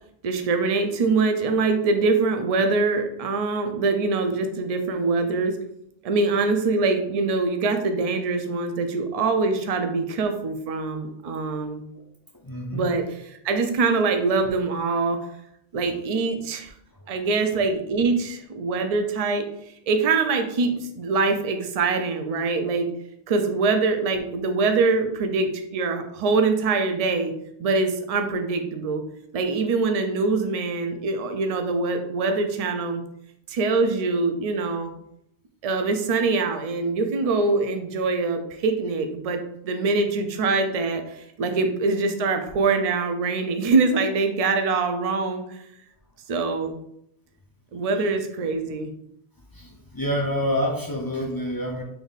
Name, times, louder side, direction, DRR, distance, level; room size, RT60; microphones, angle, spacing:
voice 1, 0.2-5.6 6.0-11.8 12.7-13.0 13.4-15.2 15.7-16.7 17.1-19.5 19.9-22.9 23.3-29.0 29.3-33.0 33.5-34.9 35.6-45.6 46.3-46.7 47.7-48.9, right 3 dB, 55° right, 6 dB, 0.4 m, -24 dB
voice 2, 12.4-12.9 49.5-51.8, equal, 35° left, -2 dB, 0.3 m, -27 dB
3.5 x 2.6 x 3.9 m, 0.75 s
omnidirectional pair, 1.1 m